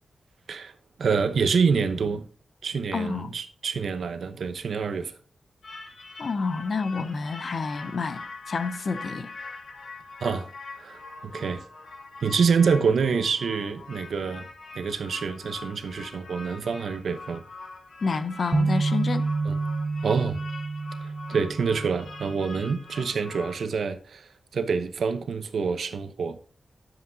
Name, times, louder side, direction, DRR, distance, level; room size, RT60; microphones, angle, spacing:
voice 1, 1.0-2.3 2.6-5.1 10.2-10.5 10.8-11.6 12.2-14.5 14.7-17.4 19.5-19.6 20.0-20.4 21.0-26.4, right 5 dB, 80° right, 0.8 m, -27 dB
voice 2, 2.9-3.3 6.2-9.3 18.0-19.3, left 4 dB, 50° left, 0.5 m, -29 dB
sound 1, 5.6-23.7, left 3 dB, 80° left, 1.6 m, -43 dB
sound 2, 18.5-22.5, right 3 dB, 25° right, 0.7 m, -28 dB
10.0 x 7.6 x 2.7 m
wide cardioid pair, 140°, 0 cm